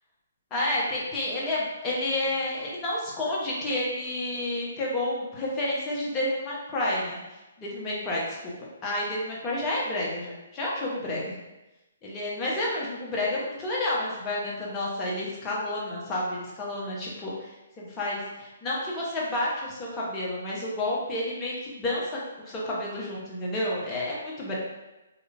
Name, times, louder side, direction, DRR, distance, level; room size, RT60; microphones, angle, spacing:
voice 1, 0.5-7.2 7.6-8.3 8.8-11.3 12.0-17.5 17.8-22.2 22.5-24.6, left 1 dB, 20° left, -5 dB, 1.1 m, -30 dB
4.8 x 2.6 x 2.6 m, 1.0 s
figure-of-eight pair, 135°, 0 cm